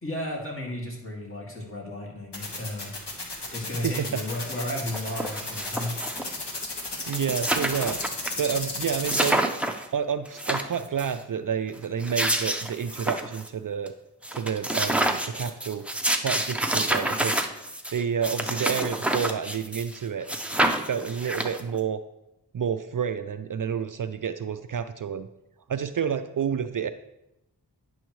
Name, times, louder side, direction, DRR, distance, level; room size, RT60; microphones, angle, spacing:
voice 1, 0.0-2.9 3.5-6.0, left 1 dB, 30° left, -2 dB, 2.2 m, -34 dB
sound 1, 2.3-9.3, left 3 dB, 70° left, 1.8 m, -33 dB
voice 2, 3.8-4.2 7.1-8.0 8.4-9.4 9.9-13.9 14.3-15.9 16.2-17.5 17.9-20.3 20.9-22.0 22.5-25.3 25.7-26.9, right 7 dB, 50° right, 9 dB, 0.4 m, -29 dB
sound 2, 4.3-4.4 4.7-6.4 6.8-6.9 7.0-8.3 8.6-8.7 9.1-9.9 10.2-11.1 11.8-13.5 13.9-14.0 14.2-20.0 20.3-21.8, right 1 dB, 5° right, 0.7 m, -28 dB
10.0 x 6.2 x 3.1 m, 0.87 s
cardioid pair, 40°, 42 cm